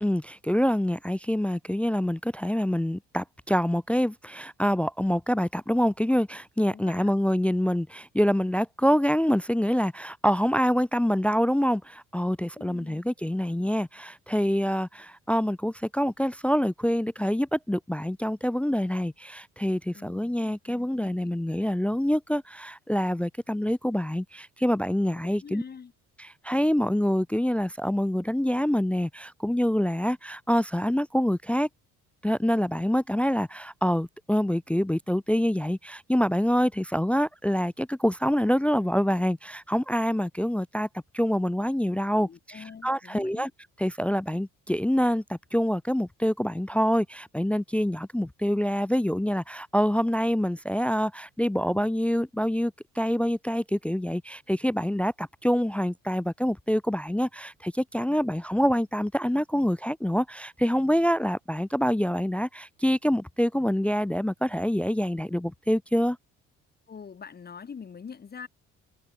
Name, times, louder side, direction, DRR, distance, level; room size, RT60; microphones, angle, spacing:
voice 1, 0.0-25.6 26.2-31.7 32.2-40.9 41.1-43.5 43.8-66.2, equal, 5° left, 0.3 m, -26 dB
voice 2, 6.7-7.1 12.6-13.0 19.9-21.3 25.0-25.9 42.1-43.5 66.9-68.5, left 6 dB, 30° left, 2.4 m, -45 dB
cardioid pair, 100°, 30 cm